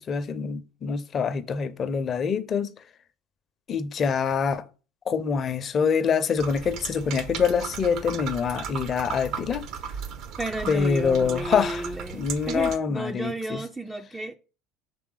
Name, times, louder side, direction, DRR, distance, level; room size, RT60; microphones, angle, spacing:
voice 1, 0.0-2.7 3.7-4.7 5.1-9.6 10.7-11.9 12.1-13.6, left 6 dB, 35° left, 0.7 m, -25 dB
sound 1, 6.4-12.8, right 7 dB, 50° right, 0.8 m, -36 dB
voice 2, 10.4-14.3, right 2 dB, 10° right, 0.5 m, -33 dB
6.2 x 3.4 x 4.9 m
figure-of-eight pair, 70°, 0 cm